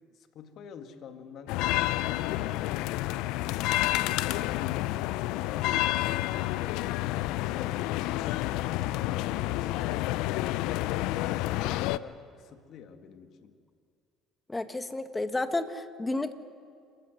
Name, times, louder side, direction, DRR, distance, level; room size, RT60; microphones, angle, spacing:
voice 1, 0.1-2.9 3.5-5.7 7.2-13.6, left 7 dB, 60° left, 7 dB, 2.0 m, -48 dB
sound 1, 1.5-12.0, left 16 dB, 75° left, 0.6 m, -29 dB
voice 2, 14.5-16.3, left 2 dB, 15° left, 9 dB, 1.6 m, -31 dB
28.5 x 14.0 x 8.0 m, 2.2 s
supercardioid pair, 80°, 0 cm